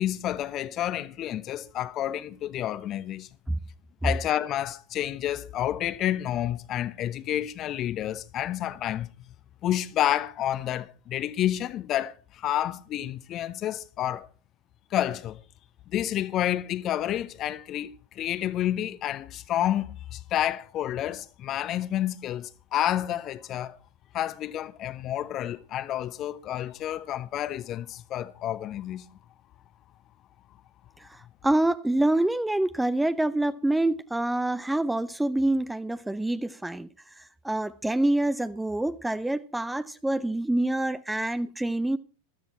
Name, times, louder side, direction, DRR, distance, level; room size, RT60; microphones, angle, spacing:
voice 1, 0.0-3.3 4.0-9.1 9.6-14.3 14.9-15.4 15.9-23.8 24.1-29.1, left 12 dB, 30° left, 0.9 m, -29 dB
voice 2, 31.4-36.9 37.4-42.0, right 1 dB, 5° right, 0.6 m, -26 dB
14.5 x 13.0 x 4.3 m
figure-of-eight pair, 90°, 0 cm